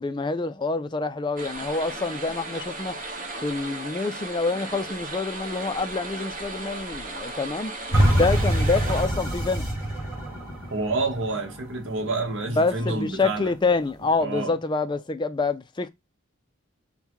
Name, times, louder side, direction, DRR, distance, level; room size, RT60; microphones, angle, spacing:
voice 1, 0.0-7.8 8.1-9.7 12.5-15.9, left 3 dB, 20° left, 0.3 m, -27 dB
sound 1, 1.4-9.0, right 2 dB, 40° right, 1.2 m, -36 dB
sound 2, 7.9-13.0 13.4-13.5, right 1 dB, 10° right, 1.9 m, -25 dB
voice 2, 10.7-13.5 14.2-14.5, right 3 dB, 60° right, 1.0 m, -28 dB
5.4 x 2.2 x 2.9 m
head